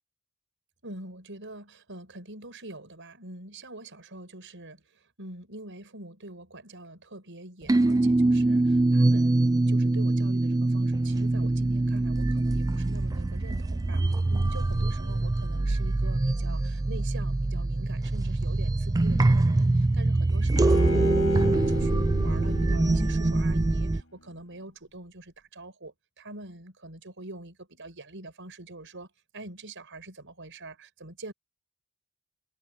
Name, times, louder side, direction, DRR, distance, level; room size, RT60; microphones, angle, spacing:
voice 1, 0.8-14.0 14.3-29.1 29.3-31.3, right 2 dB, 60° right, 6.3 m, -44 dB
sound 1, 7.7-24.0, right 2 dB, 15° right, 0.3 m, -24 dB
Bowed string instrument, 20.6-23.8, left 1 dB, 65° left, 4.8 m, -33 dB
head